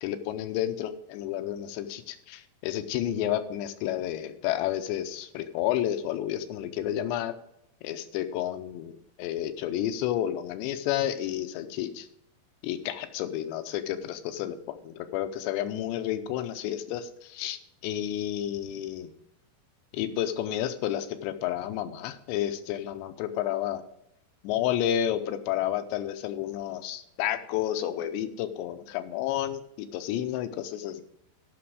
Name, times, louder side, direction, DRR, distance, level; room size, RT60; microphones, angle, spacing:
voice 1, 0.0-7.3 7.8-12.1 12.6-19.1 19.9-23.8 24.4-31.0, left 11 dB, 80° left, 10 dB, 2.8 m, -31 dB
14.5 x 6.0 x 4.8 m, 0.77 s
omnidirectional pair, 5.4 m